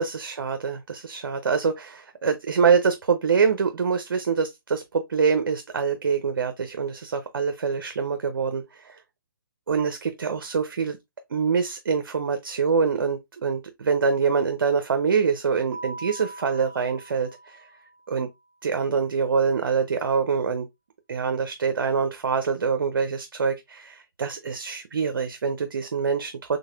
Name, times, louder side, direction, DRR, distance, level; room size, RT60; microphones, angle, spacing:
voice 1, 0.0-9.0 9.7-11.0 11.3-17.6 18.1-18.3 18.6-20.7 21.1-26.6, right 5 dB, 65° right, 0.6 m, -25 dB
Keyboard (musical), 15.7-18.3, right 2 dB, 20° right, 1.6 m, -42 dB
4.0 x 3.3 x 2.4 m
figure-of-eight pair, 145°, 12 cm